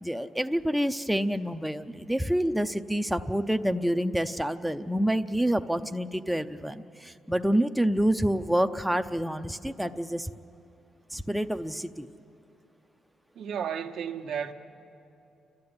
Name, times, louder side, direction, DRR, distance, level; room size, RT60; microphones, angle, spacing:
voice 1, 0.0-10.3 11.1-12.1, equal, ahead, 0.6 m, -27 dB
voice 2, 13.3-14.5, right 8 dB, 75° right, 1.1 m, -33 dB
29.0 x 12.5 x 9.6 m
cardioid pair, 90°, 0 cm